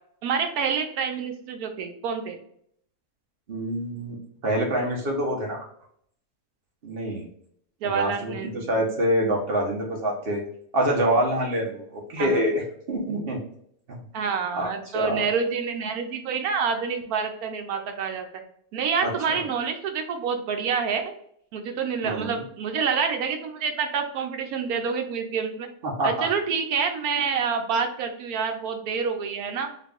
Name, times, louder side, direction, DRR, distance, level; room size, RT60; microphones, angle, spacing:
voice 1, 0.2-2.4 7.8-8.8 12.2-12.4 14.1-18.3 18.7-21.1 21.5-25.7 26.0-29.7, right 6 dB, 80° right, 5 dB, 1.1 m, -27 dB
voice 2, 3.5-4.2 4.4-5.6 6.8-7.2 7.8-10.4 10.7-12.6 12.9-13.4 13.9-14.0 14.5-14.7 14.9-15.2 19.0-19.4 22.0-22.4 25.8-26.3, right 1 dB, 45° right, 0 dB, 1.1 m, -26 dB
3.9 x 2.4 x 3.6 m, 0.68 s
omnidirectional pair, 1.5 m